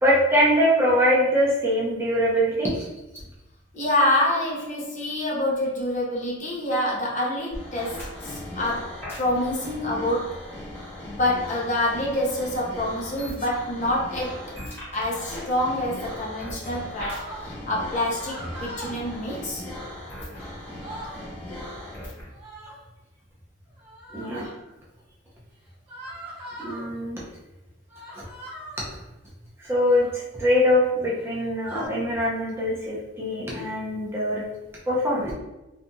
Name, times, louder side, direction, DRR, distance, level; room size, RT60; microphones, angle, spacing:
voice 1, 0.0-2.9 24.1-24.5 26.6-27.2 28.1-28.2 29.6-34.4 34.9-35.3, equal, 15° right, -6 dB, 0.6 m, -23 dB
voice 2, 3.7-10.4 11.0-14.4 14.9-19.6 24.3-24.5, left 1 dB, 40° left, -4 dB, 0.6 m, -27 dB
sound 1, 7.5-22.3, left 1 dB, 10° left, 0.9 m, -38 dB
sound 2, 17.0-17.5 18.1-19.0 20.3-20.4 20.6-21.2 22.3-22.8 23.8-24.4 25.9-26.9 27.9-28.9 29.8-30.2 31.1-31.9, equal, 30° right, 1.0 m, -40 dB
2.7 x 2.6 x 2.2 m, 1.0 s
head